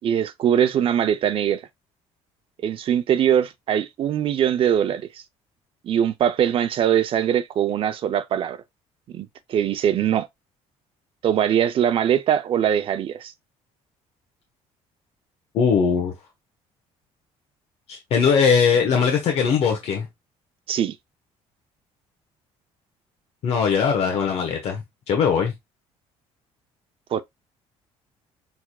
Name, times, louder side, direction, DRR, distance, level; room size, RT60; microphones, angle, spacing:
voice 1, 0.0-1.6 2.6-5.1 5.8-8.6 9.1-10.3 11.2-13.3 20.7-21.0 27.1-27.2, right 9 dB, 50° right, 0.6 m, -22 dB
voice 2, 15.5-16.1 17.9-20.1 23.4-25.5, left 6 dB, 60° left, 1.2 m, -20 dB
5.9 x 3.5 x 2.4 m
cardioid pair, 130°, 12 cm